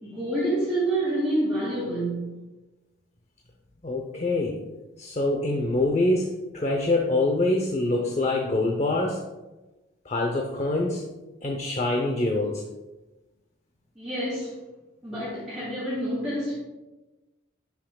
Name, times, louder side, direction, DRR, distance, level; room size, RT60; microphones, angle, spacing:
voice 1, 0.0-2.4 13.9-14.6 15.0-16.6, right 1 dB, 5° right, -11 dB, 2.7 m, -28 dB
voice 2, 3.8-4.6 5.0-9.3 10.1-11.0 11.4-12.6, left 2 dB, 35° left, 2 dB, 0.7 m, -25 dB
11.5 x 5.9 x 2.3 m, 1.1 s
head